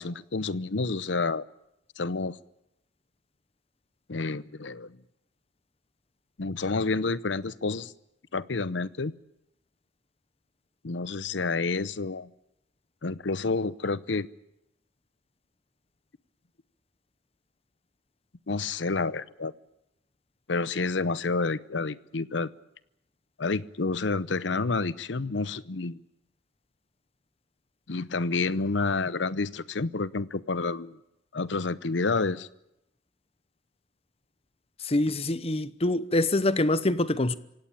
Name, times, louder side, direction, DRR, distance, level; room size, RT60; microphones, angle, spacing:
voice 1, 0.0-1.4 2.0-2.4 4.1-5.0 6.4-7.9 8.3-9.1 10.8-12.3 13.0-14.3 18.5-19.5 20.5-22.5 23.4-26.0 27.9-31.0 31.3-32.5, left 3 dB, 75° left, 0.8 m, -29 dB
voice 2, 34.8-37.3, left 2 dB, 35° left, 0.9 m, -25 dB
27.0 x 17.0 x 8.7 m
head